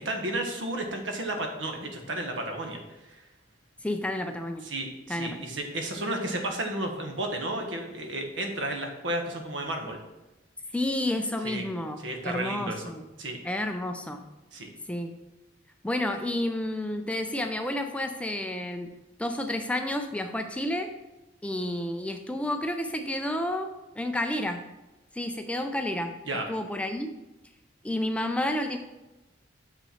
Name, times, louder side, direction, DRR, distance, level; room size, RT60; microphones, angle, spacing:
voice 1, 0.0-2.8 3.1-3.2 4.6-10.0 11.4-11.7 12.0-12.9 13.2-13.4 14.5-14.7 26.3-26.5, right 1 dB, 75° right, 3 dB, 1.3 m, -32 dB
voice 2, 3.8-4.7 5.1-5.4 10.7-13.0 13.4-14.2 14.9-15.1 15.8-18.9 19.2-20.9 21.4-23.7 24.0-24.6 25.1-26.1 26.5-27.1 27.8-28.8, left 1 dB, 5° left, 6 dB, 0.4 m, -30 dB
6.7 x 5.9 x 4.3 m, 1.0 s
head